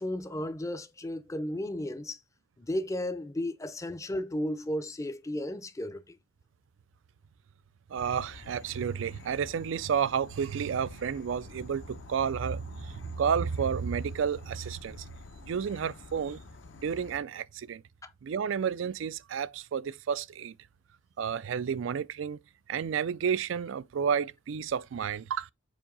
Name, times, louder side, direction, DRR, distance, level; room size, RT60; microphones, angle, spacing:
voice 1, 0.0-2.2 2.6-6.2 18.0-18.1, left 1 dB, 15° left, 0.5 m, -34 dB
voice 2, 7.9-15.1 15.4-16.4 16.8-17.8 18.2-20.5 21.2-22.4 22.7-25.5, right 7 dB, 75° right, 0.4 m, -31 dB
Insect / Frog, 8.0-17.2, left 3 dB, 70° left, 0.7 m, -50 dB
7.2 x 2.7 x 5.2 m
head